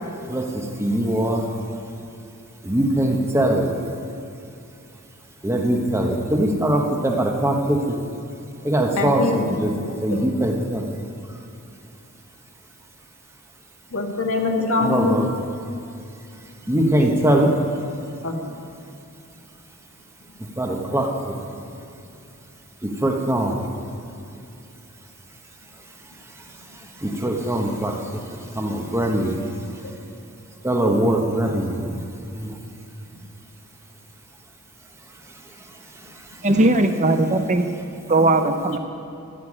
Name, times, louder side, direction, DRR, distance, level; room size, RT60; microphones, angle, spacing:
voice 1, 0.2-1.5 2.6-3.9 5.4-8.0 8.6-9.7 10.0-11.0 14.8-15.3 16.6-17.5 20.4-21.6 22.8-23.7 26.4-29.8 30.6-32.0 32.3-32.6 35.3-36.5, right 1 dB, 10° right, 1.2 m, -23 dB
voice 2, 9.0-10.3 13.9-15.3 18.2-18.5, left 3 dB, 70° left, 1.8 m, -24 dB
voice 3, 36.4-37.7 38.1-38.8, right 2 dB, 30° right, 0.7 m, -18 dB
13.5 x 7.0 x 10.0 m
head